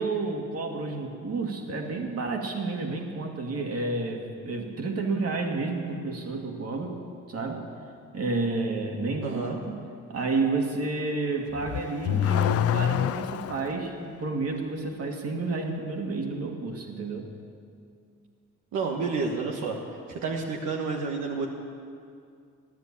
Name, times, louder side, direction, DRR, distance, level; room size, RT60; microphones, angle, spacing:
voice 1, 0.0-7.0 7.3-7.7 8.1-9.8 10.1-17.3, right 3 dB, 50° right, 2 dB, 2.4 m, -30 dB
voice 2, 9.2-9.6 18.7-19.8 20.1-21.5, right 4 dB, 80° right, -1 dB, 1.5 m, -30 dB
Car / Accelerating revving vroom, 11.5-13.8, left 11 dB, 55° left, 0.4 m, -26 dB
15.5 x 10.5 x 8.6 m, 2.3 s
cardioid pair, 90°, 30 cm